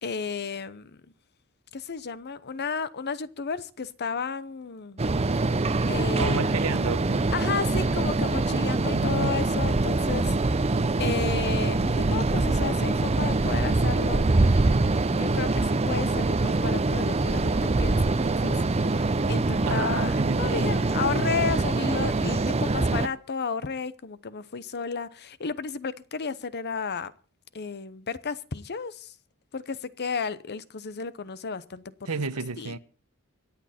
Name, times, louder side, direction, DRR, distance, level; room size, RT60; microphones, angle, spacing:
voice 1, 0.0-1.0 1.7-5.0 5.9-6.5 7.3-10.3 11.0-14.7 15.1-27.1 27.5-29.1 29.5-31.8 32.6-32.8, left 5 dB, 50° left, 0.8 m, -33 dB
sound 1, 5.0-23.1, right 2 dB, 30° right, 0.6 m, -24 dB
voice 2, 6.2-7.3 8.7-9.4 19.7-20.7 32.1-32.8, right 4 dB, 90° right, 1.0 m, -32 dB
24.5 x 8.5 x 4.3 m
head